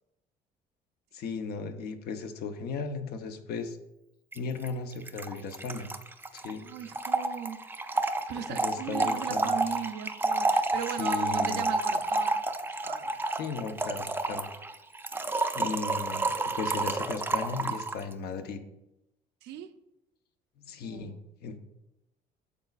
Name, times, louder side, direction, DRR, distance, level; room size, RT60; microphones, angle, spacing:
voice 1, 1.1-3.8 4.3-5.9 6.3-6.6 8.5-9.6 11.0-11.7 13.4-14.5 15.5-18.6 20.6-21.1 21.4-21.6, left 5 dB, 70° left, 0.8 m, -36 dB
Trickle dribble / Fill (with liquid), 4.3-4.4 4.6-4.7 4.9-18.0, right 2 dB, 10° right, 0.4 m, -30 dB
voice 2, 6.6-8.0 8.3-12.4 12.8-13.2 19.4-19.7 20.8-21.2, right 9 dB, 85° right, 0.6 m, -38 dB
8.6 x 6.8 x 2.4 m
cardioid pair, 110°, 17 cm